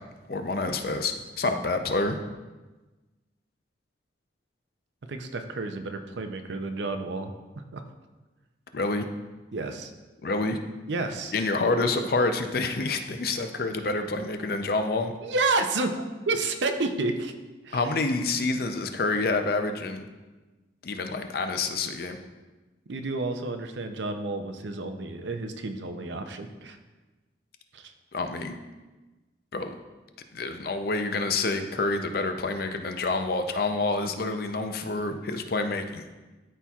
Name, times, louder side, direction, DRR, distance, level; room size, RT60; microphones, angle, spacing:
voice 1, 0.3-2.2 8.7-9.1 10.2-10.6 11.3-15.1 17.7-20.1 20.8-22.2 28.1-28.6 29.5-29.8 30.3-36.0, left 3 dB, 55° left, 7 dB, 0.5 m, -28 dB
voice 2, 5.1-7.3 7.7-7.8 9.5-9.9 10.9-11.3 15.2-17.3 17.6-17.8 22.9-26.8 27.7-27.9, right 3 dB, 75° right, 7 dB, 0.6 m, -30 dB
13.0 x 4.3 x 2.4 m, 1.2 s
head